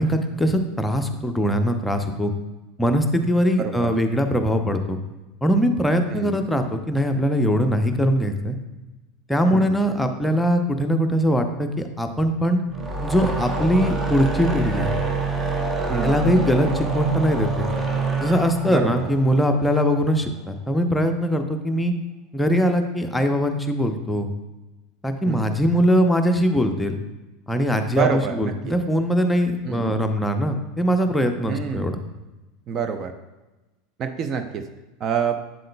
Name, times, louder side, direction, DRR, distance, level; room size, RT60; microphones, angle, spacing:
voice 1, 0.0-2.3 2.8-5.0 5.4-8.6 9.3-12.6 13.0-14.9 16.0-17.7 18.2-21.9 22.3-24.3 25.0-27.0 27.5-32.0, equal, 5° left, 5 dB, 0.7 m, -21 dB
voice 2, 3.6-3.9 6.1-6.4 9.5-9.8 15.9-16.2 18.7-19.1 25.3-25.6 27.9-28.8 29.6-29.9 31.5-32.0 32.7-33.1 34.0-34.7 35.0-35.4, right 6 dB, 40° right, 8 dB, 0.6 m, -27 dB
sound 1, 12.6-20.0, right 3 dB, 20° right, 0.9 m, -26 dB
7.6 x 7.6 x 2.2 m, 1.1 s
hypercardioid pair, 85°, 0 cm